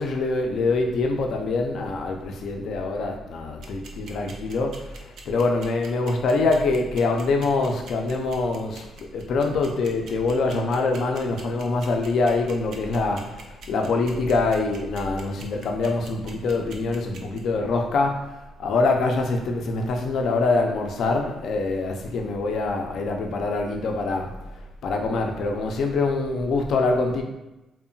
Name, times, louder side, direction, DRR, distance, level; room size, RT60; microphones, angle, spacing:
voice 1, 0.0-18.3 18.6-24.3 24.8-27.2, left 3 dB, 70° left, 3 dB, 0.4 m, -24 dB
sound 1, 3.6-17.4, right 5 dB, 70° right, 0.4 m, -44 dB
2.8 x 2.1 x 2.6 m, 1.0 s
cardioid pair, 90°, 0 cm